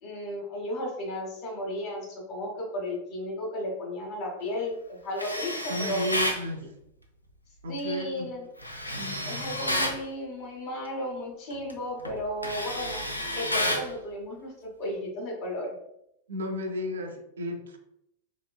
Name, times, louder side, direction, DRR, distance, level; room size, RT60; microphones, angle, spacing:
voice 1, 0.0-6.1 7.7-8.5 9.3-13.0 13.3-14.5 14.8-15.7, left 1 dB, 45° left, -1 dB, 1.1 m, -34 dB
Tools, 5.2-6.4 8.6-10.0 11.5-11.7 12.0-13.9, left 1 dB, 85° left, 0.4 m, -30 dB
voice 2, 5.7-6.7 7.6-8.3 8.9-9.2 16.3-17.8, left 1 dB, 65° right, 5 dB, 0.4 m, -33 dB
3.1 x 2.9 x 2.3 m, 0.79 s
figure-of-eight pair, 90°, 0 cm